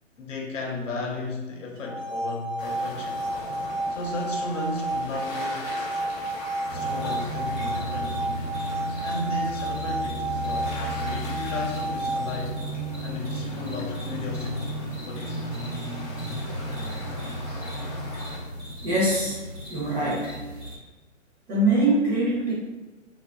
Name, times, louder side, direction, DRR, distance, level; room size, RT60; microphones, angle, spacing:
voice 1, 0.2-3.3 3.9-5.7 6.7-8.4 9.0-12.6 13.0-14.8 15.0-15.4, left 2 dB, 70° left, 0 dB, 0.7 m, -35 dB
sound 1, 1.8-12.7, right 1 dB, 85° right, 0.8 m, -31 dB
sound 2, 2.6-18.4, left 2 dB, 30° left, 0.5 m, -41 dB
sound 3, 6.7-20.8, right 1 dB, 65° right, 1.0 m, -34 dB
voice 2, 18.8-19.4 19.7-20.4 21.5-22.5, right 1 dB, 20° right, -8 dB, 0.7 m, -23 dB
2.6 x 2.3 x 2.4 m, 1.2 s
hypercardioid pair, 140°, 38 cm